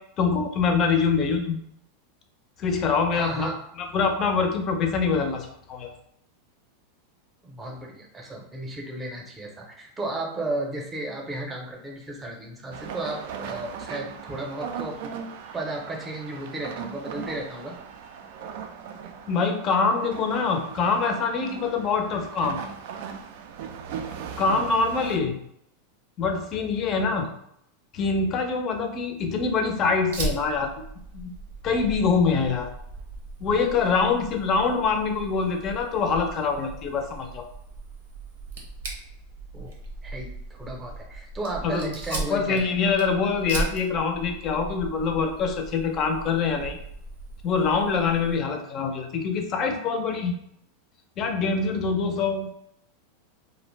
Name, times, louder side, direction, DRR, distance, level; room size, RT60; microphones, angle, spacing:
voice 1, 0.2-1.6 2.6-3.5 3.9-5.9 19.3-22.6 24.4-25.4 26.2-27.3 27.9-30.7 31.1-31.3 31.6-32.7 33.4-37.4 41.6-46.8 47.4-50.3 51.2-52.5, left 5 dB, 35° left, 5 dB, 0.5 m, -24 dB
voice 2, 3.1-3.6 7.4-15.2 15.5-17.8 39.5-39.7 40.0-42.7, right 2 dB, 15° right, 0 dB, 0.6 m, -34 dB
sound 1, 12.7-25.2, right 7 dB, 65° right, 0.3 m, -38 dB
Fire, 30.1-48.4, right 2 dB, 85° right, 0.7 m, -38 dB
2.5 x 2.1 x 3.1 m, 0.73 s
supercardioid pair, 135°, 0 cm